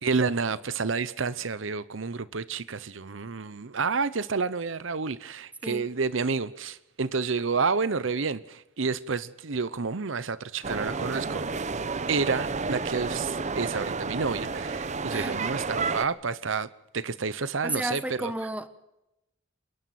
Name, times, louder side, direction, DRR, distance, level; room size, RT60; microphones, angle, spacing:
voice 1, 0.0-11.5 12.1-16.7 16.9-18.3, right 4 dB, 70° right, 0.9 m, -29 dB
sound 1, 10.6-16.1, right 4 dB, 35° right, 0.9 m, -31 dB
voice 2, 15.1-15.4 17.6-18.7, right 1 dB, 5° right, 1.3 m, -32 dB
29.0 x 11.0 x 9.3 m
head